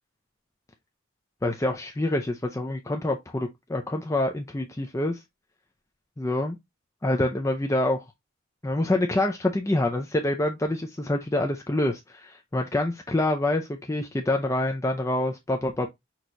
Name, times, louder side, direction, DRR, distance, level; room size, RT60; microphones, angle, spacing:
voice 1, 1.4-5.2 6.2-6.6 7.0-8.0 8.6-15.9, left 1 dB, 15° left, 0.4 m, -26 dB
6.1 x 2.9 x 2.5 m
head